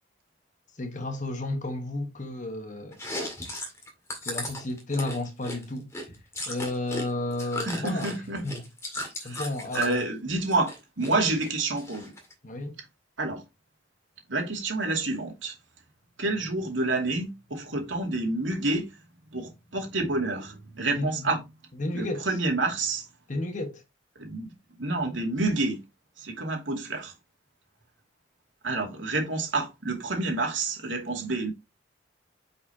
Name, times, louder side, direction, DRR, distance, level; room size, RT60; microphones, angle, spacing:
voice 1, 0.8-3.0 4.2-5.9 6.5-8.6 9.0-10.0 12.4-12.7 21.0-21.3 21.8-22.3 23.3-23.8, left 2 dB, 40° left, 1.3 m, -32 dB
Chewing mastication, 2.9-7.1 7.3-10.0 10.4-11.1 11.4-12.3, left 1 dB, 15° left, 2.0 m, -36 dB
voice 2, 7.6-8.4 9.2-9.4 9.7-12.1 13.2-13.4 14.3-15.6 16.2-18.9 19.3-21.4 21.9-23.1 24.2-24.5 24.8-25.8 26.2-27.1 28.6-31.5, right 2 dB, 85° right, 2.4 m, -28 dB
6.4 x 5.3 x 2.8 m
head